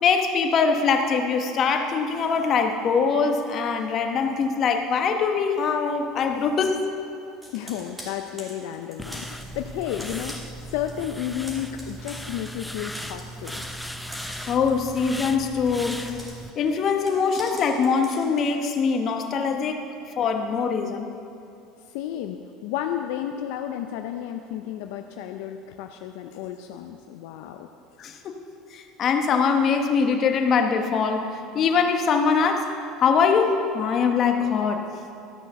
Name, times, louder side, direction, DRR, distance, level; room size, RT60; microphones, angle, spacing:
voice 1, 0.0-6.8 14.5-16.3 16.6-19.8 20.2-21.0 28.0-28.3 28.7-31.3 31.5-32.7 33.0-34.8, left 5 dB, 45° left, 5 dB, 1.1 m, -23 dB
Computer keyboard, 7.4-11.0 11.3-18.5, equal, 15° right, 2.8 m, -44 dB
voice 2, 7.5-13.8 21.9-27.7, left 10 dB, 75° left, 6 dB, 0.5 m, -32 dB
sound 1, 9.0-16.5, equal, 5° left, 0.6 m, -37 dB
13.0 x 6.2 x 6.7 m, 2.5 s
supercardioid pair, 100°, 0 cm